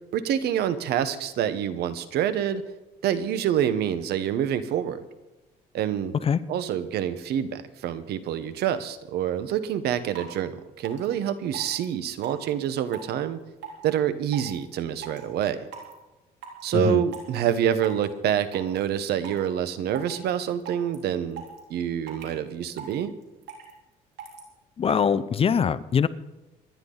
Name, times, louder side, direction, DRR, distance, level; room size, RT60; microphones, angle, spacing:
voice 1, 0.1-2.6 3.0-5.1 5.7-6.1 6.5-13.4 13.8-15.6 16.6-21.4 21.7-23.1, right 9 dB, 75° right, 13 dB, 1.1 m, -27 dB
sound 1, 9.6-9.7 10.1-10.3 10.8-11.1 11.5-11.8 12.2-12.5 12.9-13.1 13.6-13.8 14.3-14.6 15.0-15.2 15.7-15.9 16.4-16.6 17.1-17.5 17.8-18.0 18.4-18.8 19.2-19.4 19.9-20.3 20.6-20.9 21.3-21.6 22.1-22.3 22.8-22.9 23.2-23.7 24.2-24.4 24.9-25.0, right 8 dB, 90° right, 4.0 m, -39 dB
voice 2, 24.8-26.1, left 7 dB, 35° left, 16 dB, 0.6 m, -23 dB
26.0 x 10.5 x 4.0 m, 1.1 s
cardioid pair, 110°, 17 cm